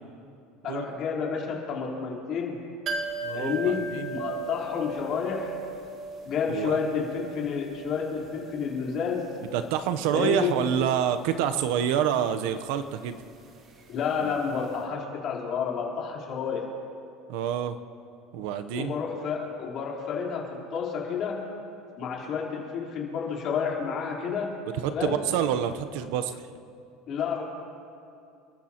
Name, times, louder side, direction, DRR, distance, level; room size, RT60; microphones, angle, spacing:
voice 1, 0.6-2.6 3.3-5.6 6.3-9.3 10.1-10.5 13.9-16.7 18.7-21.5 22.0-24.6 24.9-25.3 27.1-27.4, left 6 dB, 45° left, -3 dB, 3.8 m, -30 dB
sound 1, 2.9-14.5 14.7-14.8, right 3 dB, 40° right, 2.0 m, -39 dB
voice 2, 3.2-4.1 6.5-6.8 9.5-13.2 14.2-14.3 17.3-17.8 18.3-18.9 24.8-26.5, right 9 dB, 75° right, 9 dB, 0.8 m, -27 dB
29.5 x 13.5 x 3.0 m, 2.5 s
supercardioid pair, 140°, 0 cm